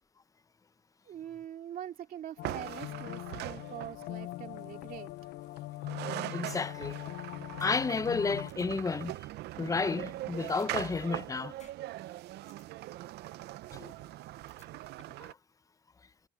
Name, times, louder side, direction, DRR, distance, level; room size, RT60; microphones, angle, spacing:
voice 1, 1.0-5.1, right 10 dB, 60° right, 2.5 m, -43 dB
sound 1, 2.4-8.5, left 17 dB, 85° left, 0.6 m, -41 dB
sound 2, 2.4-4.2 5.6-5.7 5.8-15.3, right 16 dB, 75° right, 0.6 m, -41 dB
voice 2, 6.3-7.0 7.6-9.3 9.6-11.6 13.7-13.9 15.2-15.4, left 4 dB, 20° left, 0.7 m, -32 dB
sound 3, 7.6-7.7 8.1-8.2 8.5-8.6 10.5-11.2 11.6-11.7 12.1-12.6 14.5-15.2, left 7 dB, 45° left, 6.9 m, -58 dB
cardioid pair, 110°, 17 cm